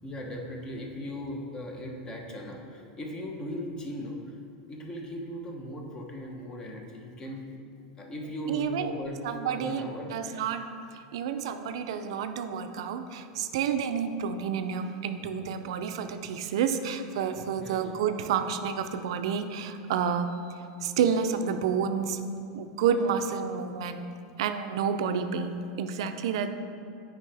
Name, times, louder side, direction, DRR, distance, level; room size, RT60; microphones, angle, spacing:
voice 1, 0.0-4.3 4.6-7.7 8.0-10.1 17.6-17.9, equal, 25° left, 1 dB, 1.0 m, -38 dB
voice 2, 8.5-8.9 9.2-10.6 10.9-20.4 20.8-22.2 22.5-24.0 24.4-26.5, right 7 dB, 75° right, 8 dB, 0.4 m, -29 dB
8.4 x 5.1 x 3.4 m, 2.5 s
supercardioid pair, 125°, 3 cm